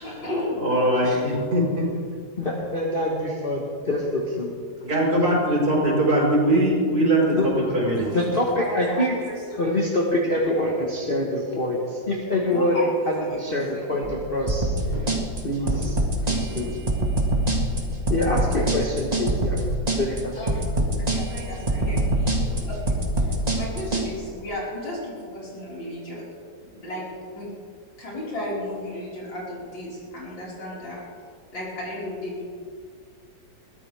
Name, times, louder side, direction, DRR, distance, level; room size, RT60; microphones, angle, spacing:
voice 1, 0.0-0.6 7.9-8.3 8.6-9.7 12.5-13.9 20.4-20.6 21.1-22.9 23.2-26.2 26.7-27.1 27.3-27.5 28.0-31.0 31.5-32.4, left 1 dB, 80° left, -7 dB, 5.8 m, -34 dB
voice 2, 0.6-1.9 4.8-8.1, right 1 dB, 55° right, -4 dB, 5.8 m, -21 dB
voice 3, 2.4-4.5 7.3-7.5 8.1-9.2 9.6-12.8 13.1-14.7 15.0-15.1 15.4-16.0 16.3-16.7 18.1-19.6 20.0-20.3, left 1 dB, 30° left, -2 dB, 1.7 m, -25 dB
sound 1, 13.3-13.5 13.9-14.3 14.9-15.2 15.7-16.0 16.3-16.8 17.1-18.3 18.9-19.1 20.8-21.1 21.6-22.7 23.3-23.4, left 1 dB, 60° left, 3.9 m, -39 dB
sound 2, 14.5-24.1, right 1 dB, 20° right, 1.9 m, -24 dB
22.0 x 16.0 x 3.6 m, 2.2 s
omnidirectional pair, 2.0 m